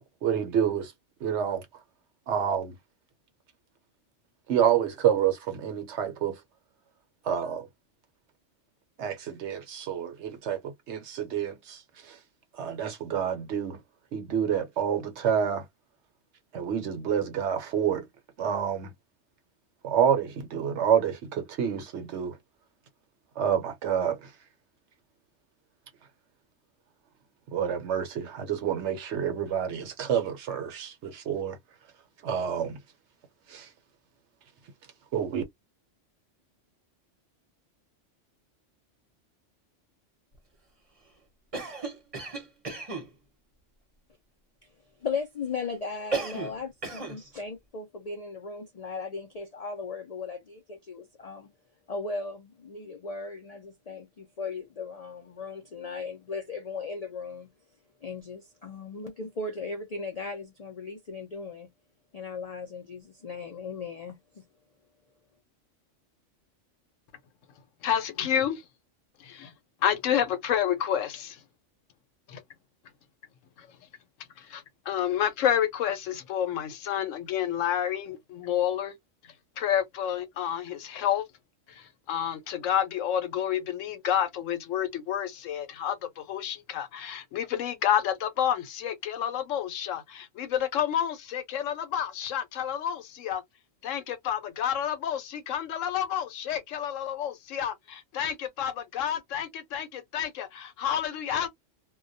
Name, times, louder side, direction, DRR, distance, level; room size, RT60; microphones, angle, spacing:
voice 1, 0.2-0.9 1.2-1.6 2.3-2.7 4.5-6.4 7.2-7.6 9.0-11.8 12.1-12.2 12.6-13.8 14.1-15.6 16.5-18.1 18.4-18.9 19.8-22.4 23.4-24.3 27.5-31.6 32.2-32.8 33.5-33.7 35.1-35.4, right 8 dB, 70° right, 0.9 m, -28 dB
Cough, 41.5-43.1 46.1-46.6 46.8-47.2, right 3 dB, 35° right, 0.8 m, -34 dB
voice 2, 45.0-51.5 51.9-57.5 58.0-61.7 62.1-64.5, left 4 dB, 65° left, 0.3 m, -37 dB
voice 3, 67.8-68.6 69.2-69.5 69.8-71.4 72.3-72.4 73.6-73.7 74.4-78.9 79.6-81.2 81.7-93.4 93.8-101.5, left 9 dB, 85° left, 1.0 m, -29 dB
2.2 x 2.2 x 2.5 m
omnidirectional pair, 1.3 m